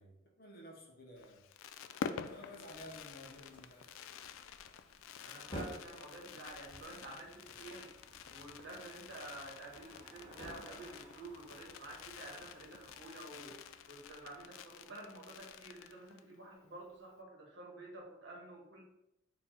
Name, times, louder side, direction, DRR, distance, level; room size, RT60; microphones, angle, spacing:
voice 1, 0.0-1.4 2.3-4.0, equal, 50° left, 0 dB, 1.0 m, -53 dB
Fireworks, 1.2-16.3 16.6-16.7 16.9-17.2, left 7 dB, 85° left, 0.3 m, -49 dB
sound 1, 2.2-13.8, equal, 25° left, 0.9 m, -54 dB
voice 2, 5.2-7.9 8.3-18.8, right 2 dB, 65° right, -1 dB, 1.3 m, -50 dB
Traffic noise roadway noise / Bicycle, 5.4-14.6, right 3 dB, 30° right, 0.5 m, -63 dB
4.4 x 2.7 x 4.2 m, 0.85 s
head